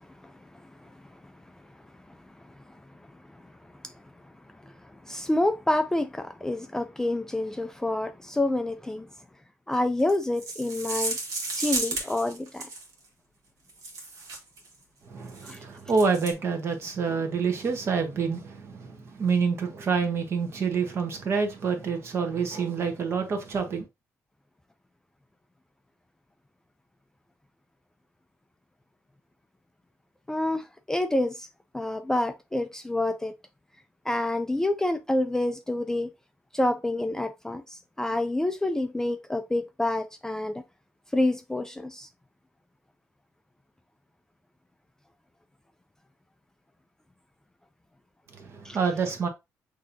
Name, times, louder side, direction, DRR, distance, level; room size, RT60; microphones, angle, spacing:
voice 1, 5.0-9.1 9.7-11.2 11.6-12.7 15.4-15.6 30.3-31.5 31.7-33.3 34.1-36.1 36.5-40.6 41.1-42.1 48.6-48.8, left 1 dB, 10° left, 0.3 m, -28 dB
sound 1, 10.0-12.9 13.7-14.7 15.3-15.5 15.9-16.3, right 3 dB, 75° right, 1.5 m, -33 dB
voice 2, 15.0-23.9 48.3-49.3, right 5 dB, 50° right, 1.1 m, -27 dB
6.2 x 2.8 x 2.6 m
cardioid pair, 130°, 6 cm